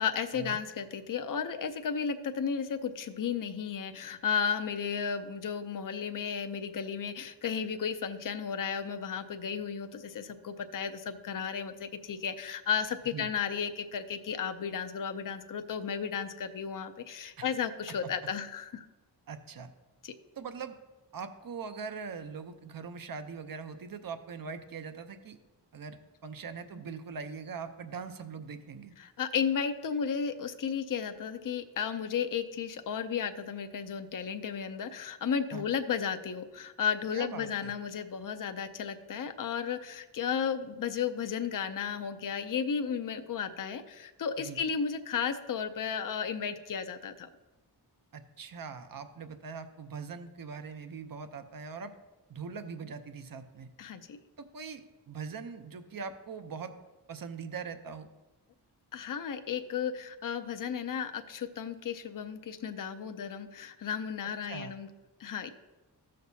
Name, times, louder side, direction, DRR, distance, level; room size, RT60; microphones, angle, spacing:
voice 1, 0.0-18.9 20.0-20.1 29.0-47.3 53.8-54.2 58.9-64.9 65.2-65.5, left 7 dB, 50° left, 9 dB, 0.6 m, -34 dB
voice 2, 19.3-19.7 20.4-20.8 21.1-25.4 25.7-28.9 35.5-35.6 37.1-37.7 44.4-44.6 48.1-51.9 52.3-53.7 54.4-56.7 57.1-58.1 64.5-64.8, right 5 dB, 55° right, 9 dB, 0.7 m, -41 dB
14.5 x 6.5 x 2.7 m, 1.1 s
wide cardioid pair, 115°, 42 cm